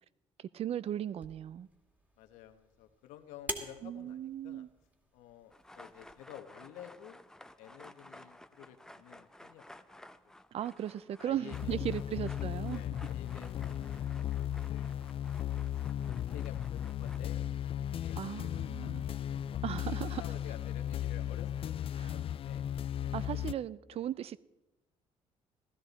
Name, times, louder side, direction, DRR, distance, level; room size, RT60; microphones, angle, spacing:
voice 1, 0.4-1.7 3.8-4.7 10.5-12.8 18.1-19.0 19.6-20.2 22.0-22.1 23.1-24.4, right 11 dB, 55° right, 0.5 m, -37 dB
sound 1, 1.2-6.1, right 1 dB, 15° right, 2.1 m, -47 dB
voice 2, 2.2-4.7 5.1-7.2 7.6-10.4 11.2-12.1 12.7-15.0 15.2-15.8 16.1-19.0 19.4-19.6 20.1-21.8 22.1-22.7 23.9-24.0, left 11 dB, 85° left, 1.0 m, -52 dB
sound 2, 5.5-17.2, left 1 dB, 5° left, 0.6 m, -55 dB
sound 3, 11.5-23.5, left 10 dB, 50° left, 0.4 m, -36 dB
16.0 x 12.5 x 4.0 m
supercardioid pair, 70°, 12 cm